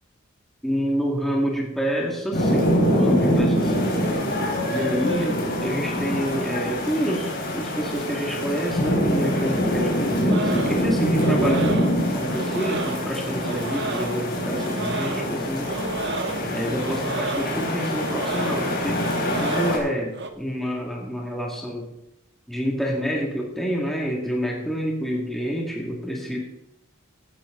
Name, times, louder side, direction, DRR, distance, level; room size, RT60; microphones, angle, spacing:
voice 1, 0.6-3.9 4.7-15.8 16.5-19.1 19.4-21.9 22.5-26.4, equal, ahead, -2 dB, 2.0 m, -28 dB
sound 1, 2.3-19.8, equal, 50° left, 4.3 m, -24 dB
sound 2, 10.3-20.3, right 3 dB, 60° right, 1.3 m, -33 dB
16.0 x 11.5 x 3.8 m, 0.86 s
head